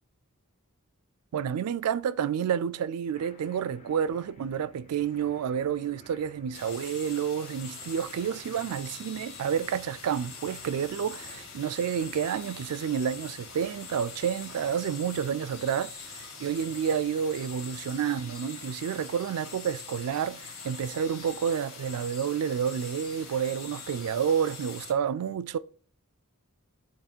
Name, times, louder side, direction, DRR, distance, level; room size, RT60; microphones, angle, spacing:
voice 1, 1.3-25.6, right 8 dB, 85° right, 0.3 m, -30 dB
sound 1, 3.1-18.0, left 1 dB, 30° left, 0.9 m, -56 dB
sound 2, 6.5-24.9, left 5 dB, 65° left, 1.6 m, -44 dB
8.6 x 2.9 x 4.4 m
head